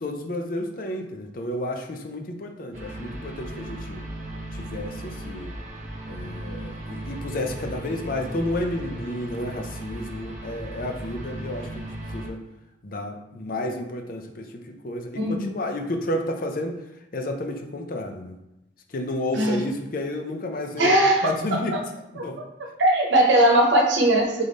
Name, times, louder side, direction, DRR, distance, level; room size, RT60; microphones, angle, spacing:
voice 1, 0.0-4.0 4.5-5.5 6.1-12.4 12.8-16.8 17.1-18.4 18.9-20.9 21.2-21.8 22.2-22.4, left 1 dB, 50° left, 4 dB, 0.5 m, -31 dB
sound 1, 2.7-12.3, right 1 dB, 45° right, 0.8 m, -36 dB
voice 2, 15.2-15.6 19.3-19.7 20.8-21.8 22.2-22.3 22.8-24.4, right 1 dB, 80° right, 1 dB, 0.9 m, -20 dB
3.7 x 3.5 x 3.9 m, 0.90 s
head